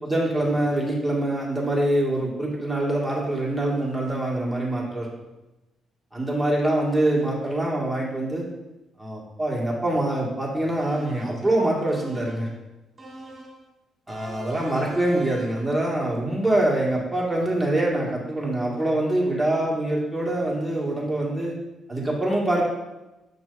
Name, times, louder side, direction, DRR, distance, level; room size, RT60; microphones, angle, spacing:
voice 1, 0.0-5.1 6.1-8.4 9.0-12.5 14.1-21.5 21.9-22.6, right 1 dB, ahead, -5 dB, 1.9 m, -24 dB
sound 1, 10.8-11.5 11.9-12.5 13.0-13.6 14.1-15.7, right 1 dB, 30° right, 1.8 m, -42 dB
6.7 x 6.0 x 2.6 m, 1.0 s
cardioid pair, 90°, 0 cm